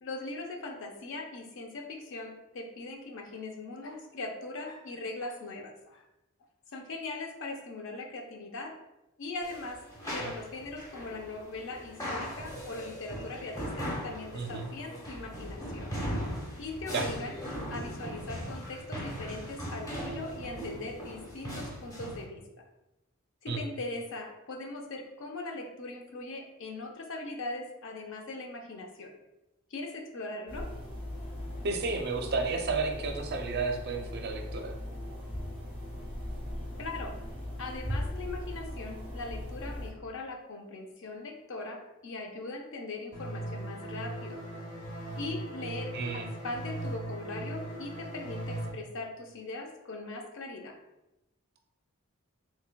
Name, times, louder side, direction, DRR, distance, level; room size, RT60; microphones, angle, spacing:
voice 1, 0.0-6.0 6.7-8.7 9.2-9.8 10.1-15.9 16.6-17.3 17.7-22.4 23.4-29.1 29.7-30.7 36.8-37.1 37.6-44.4 45.2-50.8, left 2 dB, 60° left, 2 dB, 0.6 m, -40 dB
sound 1, 9.4-22.2, equal, 15° left, 0.8 m, -39 dB
voice 2, 14.3-14.7 16.9-17.1 23.5-23.6 31.6-34.8 45.9-46.3, right 4 dB, 50° right, 4 dB, 0.5 m, -32 dB
sound 2, 30.5-39.9, left 1 dB, 40° left, 1.3 m, -39 dB
sound 3, 43.1-48.7, right 1 dB, 80° left, 1.2 m, -39 dB
5.8 x 2.2 x 2.2 m, 0.96 s
head